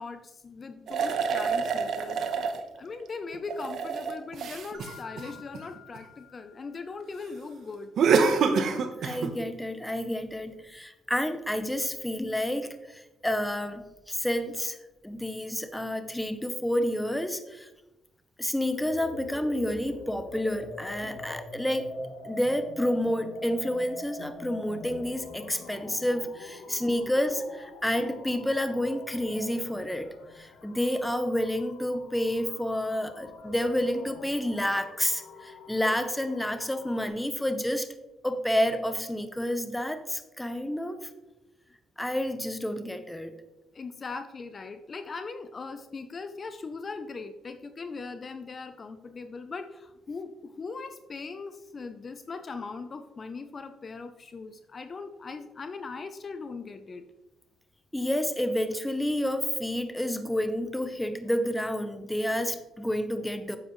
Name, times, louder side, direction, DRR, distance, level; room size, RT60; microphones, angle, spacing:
voice 1, 0.0-7.9 21.0-21.3 25.6-25.7 26.7-26.8 43.7-57.0, left 4 dB, 40° left, 9 dB, 0.6 m, -40 dB
sound 1, 0.9-2.6 3.3-6.0 8.0-9.3, right 5 dB, 65° right, 1.0 m, -26 dB
Mallet percussion, 4.7-7.3, left 8 dB, 85° right, 2.7 m, -51 dB
voice 2, 9.0-14.8 15.0-17.7 18.4-21.9 22.2-30.1 30.3-37.9 38.2-41.1 42.0-43.3 57.9-63.6, left 1 dB, 5° left, 9 dB, 0.9 m, -29 dB
sound 2, 18.8-37.1, left 3 dB, 80° left, 1.3 m, -45 dB
9.7 x 7.7 x 3.2 m, 1.0 s
cardioid pair, 90°, 0 cm